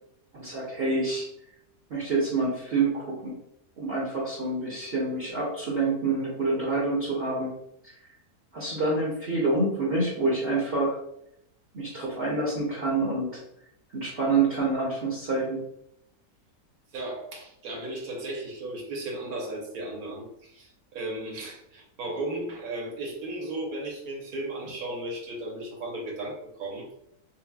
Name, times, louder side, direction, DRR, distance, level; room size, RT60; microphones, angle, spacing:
voice 1, 0.3-1.3 1.9-3.4 3.8-7.5 8.5-11.0 11.7-13.4 13.9-15.6, right 3 dB, 50° right, -5 dB, 0.9 m, -27 dB
voice 2, 16.9-27.0, right 2 dB, 70° right, -1 dB, 1.4 m, -35 dB
5.5 x 2.1 x 2.3 m, 0.77 s
omnidirectional pair, 1.6 m